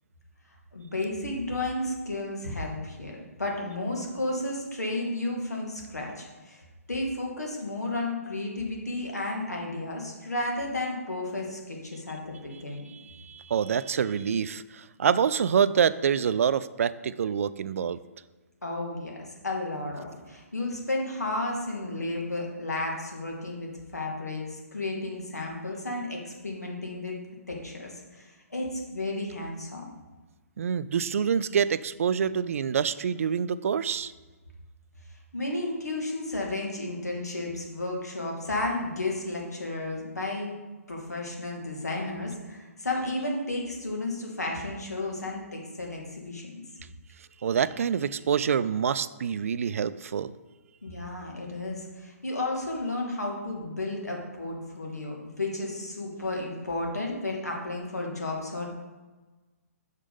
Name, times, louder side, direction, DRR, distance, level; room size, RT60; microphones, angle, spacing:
voice 1, 0.7-12.9 18.6-27.2 27.5-29.9 35.3-40.5 40.9-46.6 50.8-58.7, left 2 dB, 90° left, 0 dB, 2.1 m, -33 dB
voice 2, 12.9-18.0 30.6-34.1 47.4-50.3, right 7 dB, 60° right, 15 dB, 0.4 m, -26 dB
6.4 x 5.1 x 5.4 m, 1.2 s
figure-of-eight pair, 135°, 8 cm